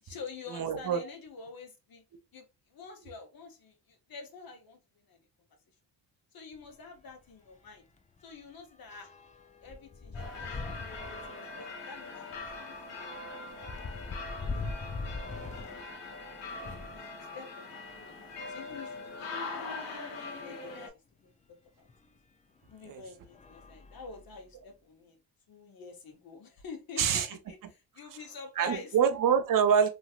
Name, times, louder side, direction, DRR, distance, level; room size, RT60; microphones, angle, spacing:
voice 1, 0.0-2.0 2.3-5.3 6.3-7.9 8.2-9.1 9.6-15.3 16.9-19.3 19.5-20.0 20.4-21.3 21.8-21.9 22.7-25.2 25.5-29.0, left 4 dB, 50° left, 1.1 m, -48 dB
voice 2, 0.5-1.1 22.9-23.0 27.0-27.3 28.6-29.9, right 7 dB, 50° right, 0.7 m, -25 dB
sound 1, 6.5-6.7 7.1-7.2 7.5-17.0 17.7-19.1 19.8-19.9 20.1-20.2 21.9-22.0 22.6-22.8 23.3-24.6, left 4 dB, 15° left, 0.4 m, -43 dB
sound 2, 10.1-20.9, left 3 dB, 85° left, 1.3 m, -42 dB
3.1 x 2.7 x 2.4 m
supercardioid pair, 70°, 44 cm